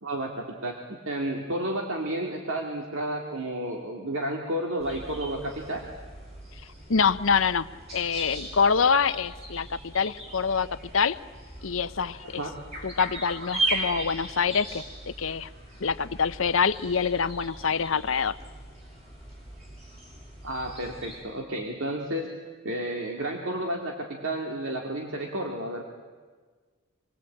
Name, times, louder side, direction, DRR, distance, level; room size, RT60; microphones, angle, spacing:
voice 1, 0.0-5.8 12.4-12.5 20.4-22.3 22.6-25.8, right 1 dB, 65° right, 1 dB, 2.4 m, -31 dB
sound 1, 4.8-21.2, right 2 dB, 30° right, 6.6 m, -38 dB
voice 2, 6.9-7.7 7.9-10.7 10.9-11.2 11.6-12.4 12.8-15.5 15.8-18.4, left 6 dB, 70° left, 13 dB, 0.8 m, -25 dB
27.0 x 22.0 x 8.7 m, 1.5 s
head